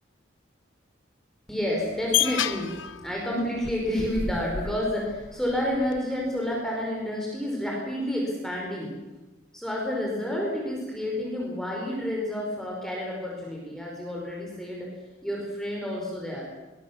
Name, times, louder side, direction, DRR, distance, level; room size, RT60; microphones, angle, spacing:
voice 1, 1.5-8.9 9.5-14.9 15.2-16.5, left 1 dB, ahead, -3 dB, 5.3 m, -30 dB
sound 1, 1.8-6.0, left 8 dB, 85° left, 1.1 m, -31 dB
23.0 x 22.0 x 7.4 m, 1.1 s
head